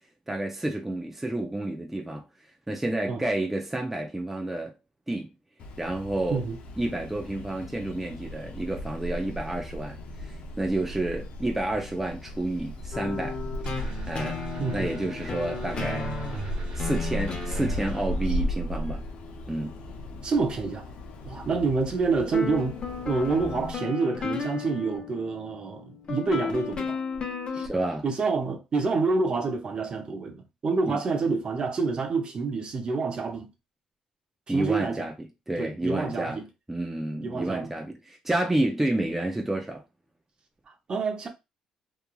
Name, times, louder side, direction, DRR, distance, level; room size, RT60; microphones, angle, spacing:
voice 1, 0.3-2.2 2.7-4.7 5.1-5.3 5.8-6.4 6.8-10.0 10.2-13.4 14.1-14.4 14.7-16.1 16.7-19.1 19.5-19.8 27.6-28.0 30.9-31.0 34.5-35.1 35.5-36.4 36.7-39.8, right 1 dB, 10° right, 0.6 m, -30 dB
sound 1, 5.6-23.7, equal, 70° left, 0.6 m, -36 dB
voice 2, 6.3-6.6 14.6-15.0 18.3-18.4 20.2-20.9 21.2-22.8 23.0-27.0 27.5-27.7 28.0-33.5 34.5-35.1 35.6-36.5 37.2-37.7 40.7-41.3, right 4 dB, 45° right, 0.7 m, -28 dB
sound 2, 12.9-20.1 22.3-27.7, left 4 dB, 45° left, 0.9 m, -35 dB
sound 3, 13.6-18.0, equal, 75° right, 1.1 m, -44 dB
3.1 x 2.3 x 2.3 m
cardioid pair, 90°, 2 cm